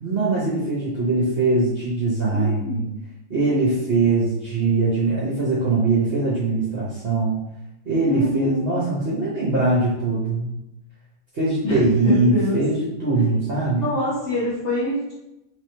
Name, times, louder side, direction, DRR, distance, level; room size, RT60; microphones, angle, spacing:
voice 1, 0.0-2.8 3.3-7.4 7.9-10.5 11.3-13.9, right 3 dB, 50° right, -6 dB, 1.0 m, -21 dB
voice 2, 2.3-2.8 8.1-8.8 11.6-12.6 13.8-15.1, left 1 dB, 60° left, -9 dB, 1.6 m, -25 dB
3.4 x 3.4 x 4.4 m, 0.91 s
omnidirectional pair, 1.4 m